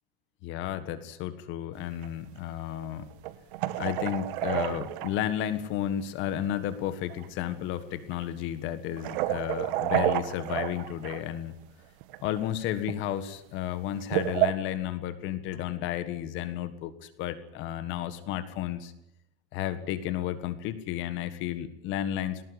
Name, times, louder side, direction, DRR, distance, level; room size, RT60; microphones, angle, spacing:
voice 1, 0.4-3.1 3.8-11.6 12.2-18.9 19.5-22.4, left 11 dB, 40° left, 12 dB, 1.6 m, -32 dB
sound 1, 2.0-2.1 3.2-5.4 6.7-6.8 7.1-7.3 8.1-8.2 9.0-11.2 12.0-12.4 12.8-13.1 13.9-14.5, right 15 dB, 55° right, 1.6 m, -29 dB
19.5 x 18.5 x 9.7 m, 0.80 s
supercardioid pair, 155°, 31 cm